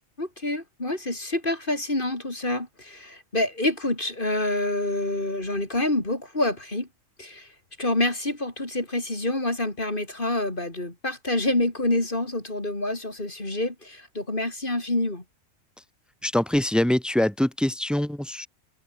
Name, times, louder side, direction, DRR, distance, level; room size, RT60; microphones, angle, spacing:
voice 1, 0.2-6.9 7.2-7.5 7.8-15.2, left 1 dB, 40° left, 4.2 m, -27 dB
voice 2, 16.2-18.5, left 1 dB, ahead, 2.3 m, -24 dB
omnidirectional pair, 1.4 m